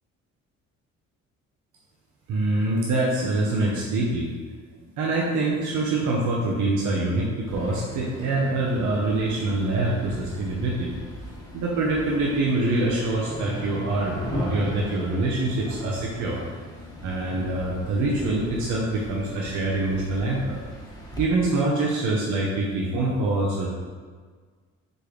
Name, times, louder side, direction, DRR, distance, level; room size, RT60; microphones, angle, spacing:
voice 1, 2.3-4.3 5.0-10.9 11.5-16.4 17.0-20.6 21.2-23.7, right 2 dB, 80° right, -4 dB, 0.8 m, -25 dB
sound 1, 7.5-21.3, equal, 10° left, 0.9 m, -38 dB
4.3 x 3.3 x 3.1 m, 1.5 s
cardioid pair, 90°, 30 cm